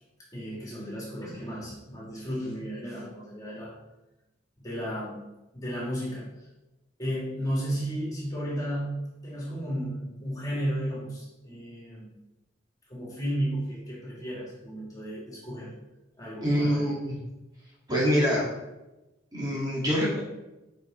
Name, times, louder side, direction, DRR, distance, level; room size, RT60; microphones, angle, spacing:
voice 1, 0.3-3.7 4.6-5.2 5.5-6.3 7.0-12.1 12.9-15.7 16.2-16.9, equal, 20° left, -5 dB, 2.8 m, -33 dB
voice 2, 16.4-17.2 17.9-18.5 19.3-20.2, equal, 20° right, -6 dB, 2.2 m, -25 dB
8.4 x 5.3 x 4.5 m, 0.98 s
head